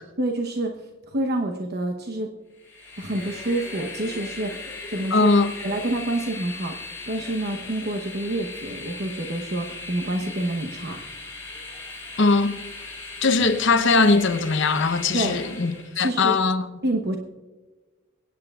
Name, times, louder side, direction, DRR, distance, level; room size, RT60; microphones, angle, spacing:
voice 1, 0.2-2.3 3.0-5.3 5.6-11.0 15.1-15.4 15.9-16.4 16.8-17.2, right 1 dB, 55° right, 0.9 m, -28 dB
Train, 2.6-16.0, left 3 dB, 15° left, 3.9 m, -38 dB
voice 2, 5.1-5.5 12.2-12.7 13.2-16.7, left 3 dB, 70° left, 0.9 m, -20 dB
23.0 x 9.5 x 2.4 m
head